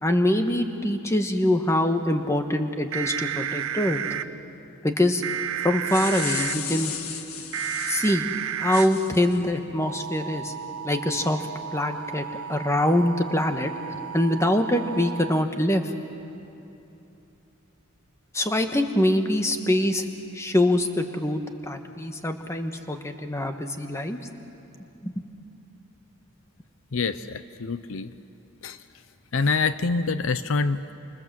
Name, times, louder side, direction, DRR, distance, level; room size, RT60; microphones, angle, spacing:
voice 1, 0.0-4.0 4.8-5.2 5.6-6.9 7.9-8.3 8.6-10.5 10.8-11.4 11.7-13.7 14.1-15.8 18.3-20.0 20.3-24.2 25.0-25.1, left 1 dB, 15° left, 6 dB, 1.3 m, -24 dB
sound 1, 2.9-4.2 5.2-6.5 7.5-8.8 9.8-15.4, right 9 dB, 70° right, 0.7 m, -32 dB
sound 2, 5.6-8.2 8.7-9.4, left 7 dB, 80° left, 1.7 m, -34 dB
voice 2, 26.9-28.1 28.6-28.8 29.3-30.9, left 4 dB, 65° left, 12 dB, 0.6 m, -26 dB
27.5 x 26.0 x 7.6 m, 2.9 s
head